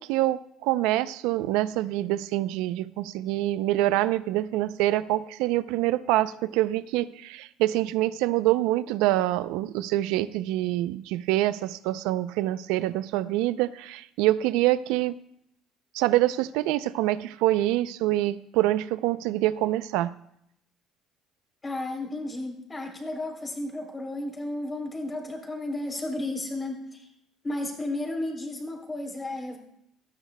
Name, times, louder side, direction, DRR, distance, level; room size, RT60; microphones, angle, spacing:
voice 1, 0.0-15.1 15.9-20.1, right 15 dB, 90° right, 15 dB, 0.4 m, -25 dB
voice 2, 21.6-27.1 27.4-29.6, left 1 dB, 20° left, 3 dB, 3.3 m, -33 dB
18.0 x 13.0 x 2.2 m, 0.75 s
cardioid pair, 100°, 0 cm